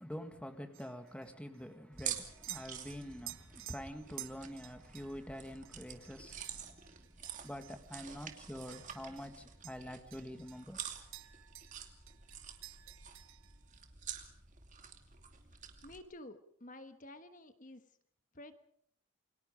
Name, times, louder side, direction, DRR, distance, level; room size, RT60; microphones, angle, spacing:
voice 1, 0.0-6.7 7.4-10.8, equal, 5° left, 1.7 m, -46 dB
sound 1, 0.7-9.4 9.6-11.8 12.1-13.6, right 14 dB, 65° right, 1.2 m, -53 dB
sound 2, 1.9-16.0, right 8 dB, 35° right, 2.7 m, -48 dB
voice 2, 15.8-17.8 18.3-18.6, left 1 dB, 40° left, 1.3 m, -51 dB
29.0 x 24.0 x 5.1 m
head